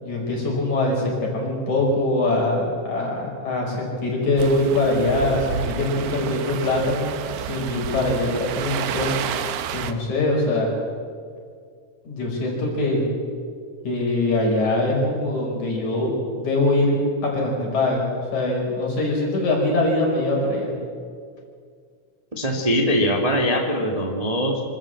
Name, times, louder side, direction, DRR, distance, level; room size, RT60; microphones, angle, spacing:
voice 1, 0.0-7.0 7.4-9.1 9.7-10.7 12.0-13.0 13.8-18.0 18.3-20.7, left 2 dB, 65° left, -1 dB, 6.3 m, -23 dB
sound 1, 4.4-9.9, right 9 dB, 70° right, 2.2 m, -30 dB
voice 2, 22.3-24.6, equal, 15° right, 1 dB, 1.3 m, -22 dB
25.5 x 13.5 x 7.6 m, 2.1 s
omnidirectional pair, 3.7 m